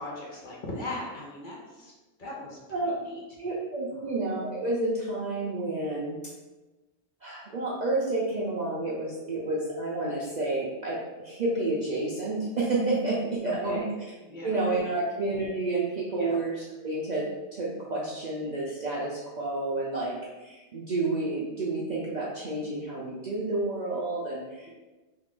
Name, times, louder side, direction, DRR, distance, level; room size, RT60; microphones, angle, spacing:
voice 1, 0.0-1.9 2.2-2.6 2.9-3.2 3.9-4.1 13.4-13.9 14.2-14.6 14.9-15.1 16.2-16.4, left 2 dB, 50° left, -4 dB, 0.7 m, -38 dB
voice 2, 3.4-6.2 7.2-13.8 14.4-24.7, right 2 dB, 65° right, -6 dB, 0.4 m, -30 dB
2.9 x 2.4 x 3.6 m, 1.1 s
omnidirectional pair, 1.4 m